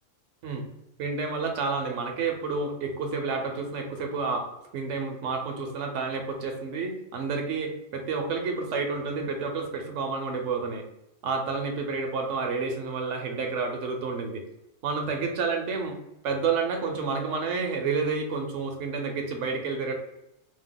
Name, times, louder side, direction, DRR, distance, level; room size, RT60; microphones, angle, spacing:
voice 1, 1.0-4.5 4.7-10.8 11.2-14.4 14.8-16.0 16.2-19.9, right 4 dB, 75° right, 4 dB, 0.9 m, -30 dB
2.9 x 2.1 x 3.7 m, 0.87 s
omnidirectional pair, 1.3 m